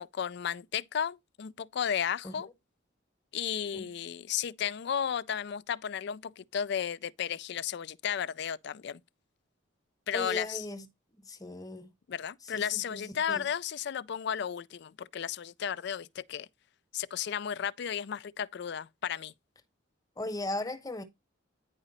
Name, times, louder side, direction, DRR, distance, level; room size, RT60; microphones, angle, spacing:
voice 1, 0.0-2.5 3.3-9.0 10.1-10.6 12.1-16.5 16.9-19.3, left 8 dB, 60° left, 0.4 m, -34 dB
voice 2, 10.1-10.9 11.1-11.9 12.4-13.5 20.2-21.0, left 2 dB, 20° left, 1.0 m, -38 dB
9.8 x 5.0 x 4.1 m
head